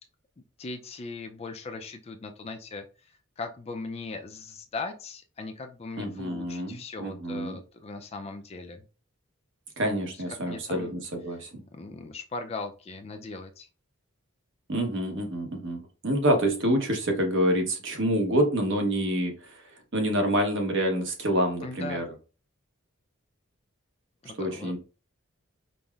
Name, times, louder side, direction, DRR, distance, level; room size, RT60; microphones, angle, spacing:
voice 1, 0.6-2.8 3.4-8.9 10.5-10.9 11.7-13.7 21.6-22.1 24.2-24.8, left 3 dB, 30° left, 6 dB, 0.3 m, -39 dB
voice 2, 6.0-7.6 9.8-11.5 14.7-19.6 19.9-22.0 24.4-24.8, equal, 60° right, 3 dB, 0.9 m, -27 dB
5.2 x 2.1 x 2.3 m, 0.34 s
head